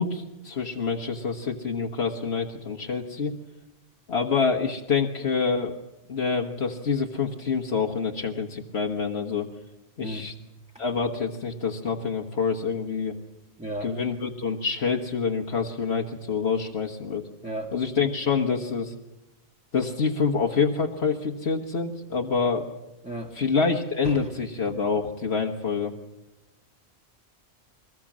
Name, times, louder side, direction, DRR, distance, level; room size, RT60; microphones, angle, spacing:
voice 1, 0.0-3.3 4.1-5.7 6.1-9.5 10.0-10.3 10.8-13.1 13.8-17.2 17.7-18.9 19.7-22.7 23.3-25.9, left 5 dB, 75° left, 1 dB, 1.7 m, -26 dB
voice 2, 10.0-10.3 13.6-13.9 17.4-17.7 23.0-23.3 24.0-24.3, right 1 dB, 5° right, -2 dB, 1.7 m, -34 dB
23.0 x 20.0 x 7.4 m, 0.96 s
omnidirectional pair, 1.1 m